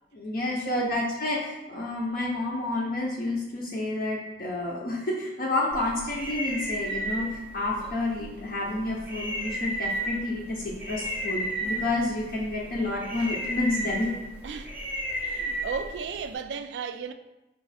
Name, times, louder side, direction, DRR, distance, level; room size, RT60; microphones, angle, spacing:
voice 1, 0.1-14.1 14.4-14.7, left 2 dB, 55° left, 0.6 m, -30 dB
voice 2, 0.6-1.1 7.4-7.5 14.4-14.7 15.2-17.1, right 6 dB, 80° right, 0.3 m, -34 dB
sound 1, 5.7-16.3, right 1 dB, 10° right, 0.6 m, -34 dB
4.8 x 2.5 x 4.0 m
head